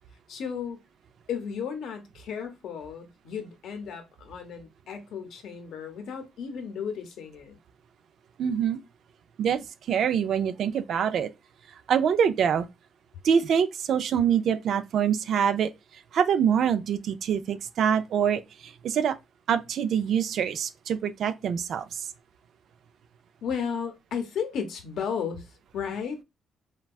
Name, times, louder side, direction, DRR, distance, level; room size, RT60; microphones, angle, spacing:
voice 1, 0.3-0.8 1.3-7.6 23.4-26.2, left 7 dB, 75° left, 0.7 m, -34 dB
voice 2, 8.4-8.8 9.4-11.3 11.9-12.7 13.2-15.7 16.1-19.2 19.5-22.1, right 8 dB, 65° right, 0.3 m, -25 dB
3.4 x 2.2 x 2.3 m
cardioid pair, 90°, 0 cm